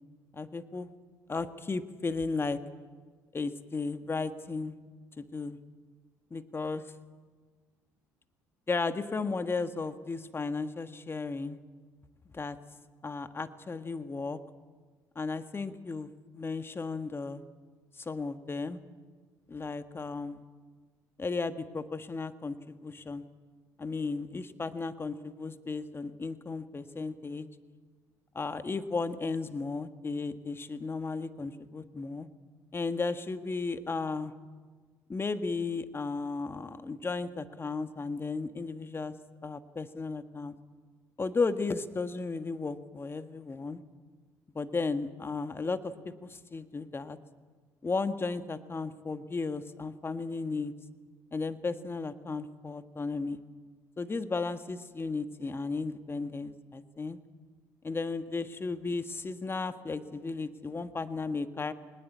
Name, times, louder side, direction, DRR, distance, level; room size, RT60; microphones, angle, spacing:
voice 1, 0.3-0.9 1.3-2.6 3.3-4.8 5.2-5.6 6.3-6.8 8.7-11.6 12.3-12.6 13.0-14.4 15.1-17.4 18.0-18.8 19.5-20.4 21.2-23.2 23.8-27.5 28.3-32.3 32.7-34.3 35.1-39.1 39.4-40.5 41.2-43.8 44.5-47.2 47.8-50.7 51.3-53.4 54.0-57.2 57.8-61.7, left 4 dB, 30° left, 10 dB, 1.6 m, -34 dB
21.5 x 19.5 x 8.6 m, 1.5 s
hypercardioid pair, 60°, 8 cm